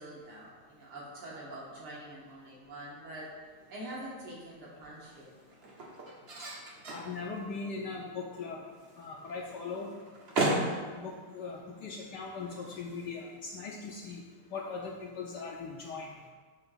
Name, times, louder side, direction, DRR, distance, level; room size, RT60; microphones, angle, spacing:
voice 1, 0.0-3.3 3.7-5.3, right 1 dB, 80° right, -6 dB, 2.5 m, -45 dB
sound 1, 3.4-13.8, right 2 dB, 50° right, 0.8 m, -39 dB
voice 2, 6.9-8.6 9.0-9.9 10.4-14.2 14.5-16.1, left 4 dB, 70° left, -1 dB, 1.0 m, -40 dB
7.1 x 3.0 x 5.5 m, 1.5 s
omnidirectional pair, 2.3 m